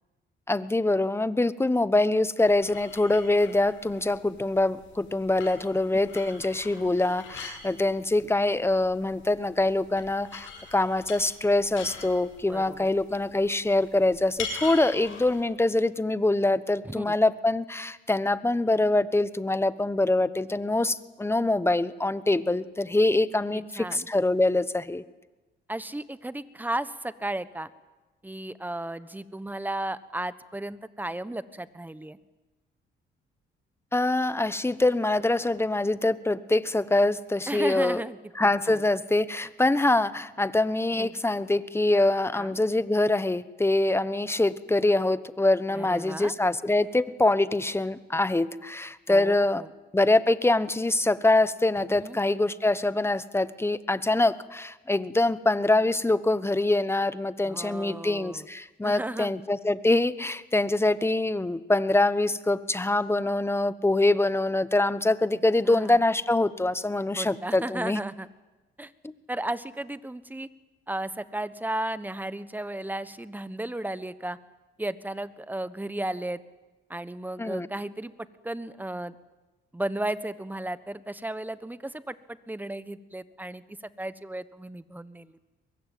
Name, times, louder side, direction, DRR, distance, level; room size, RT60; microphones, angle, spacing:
voice 1, 0.5-25.0 33.9-38.0 38.4-49.6 49.9-68.0 77.4-77.7, left 2 dB, 10° left, 15 dB, 1.1 m, -24 dB
sound 1, 2.4-15.4, left 5 dB, 85° left, 7.0 m, -44 dB
voice 2, 12.5-12.9 16.8-17.2 23.5-24.1 25.7-27.7 28.2-32.2 37.5-38.8 40.9-41.1 42.3-42.6 45.7-46.3 49.1-49.7 51.9-52.2 57.4-58.5 58.8-59.3 65.6-66.0 67.1-68.3 68.8-68.9 69.3-70.5 70.9-74.4 74.8-76.4 76.9-79.1 79.7-85.4, right 1 dB, 10° right, 14 dB, 1.2 m, -34 dB
23.0 x 21.5 x 9.4 m, 1.1 s
cardioid pair, 90°, 20 cm